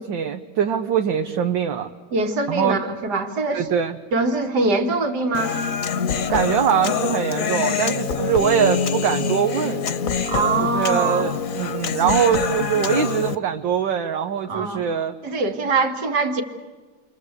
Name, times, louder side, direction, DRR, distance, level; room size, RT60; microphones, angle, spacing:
voice 1, 0.0-1.9 2.5-2.8 3.5-4.0 6.3-9.9 10.6-15.1, right 8 dB, 70° right, 5 dB, 1.7 m, -22 dB
voice 2, 2.1-3.7 4.1-5.6 10.3-11.4 14.5-14.9 15.2-16.4, right 3 dB, 55° right, 5 dB, 2.5 m, -23 dB
Human voice, 5.3-13.4, left 6 dB, 50° left, 1.3 m, -25 dB
29.5 x 23.5 x 8.1 m, 1.4 s
omnidirectional pair, 2.2 m